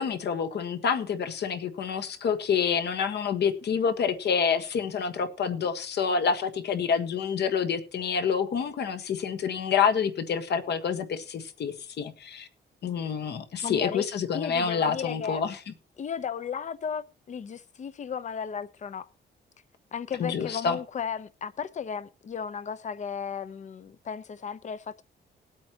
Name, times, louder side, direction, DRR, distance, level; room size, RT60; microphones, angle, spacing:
voice 1, 0.0-12.5 12.8-15.6 20.2-20.8, left 6 dB, 65° left, 1.5 m, -28 dB
voice 2, 13.6-14.1 14.3-15.4 16.0-19.1 19.9-25.0, left 7 dB, 40° left, 0.8 m, -34 dB
20.5 x 8.4 x 2.9 m
wide cardioid pair, 150°, 19 cm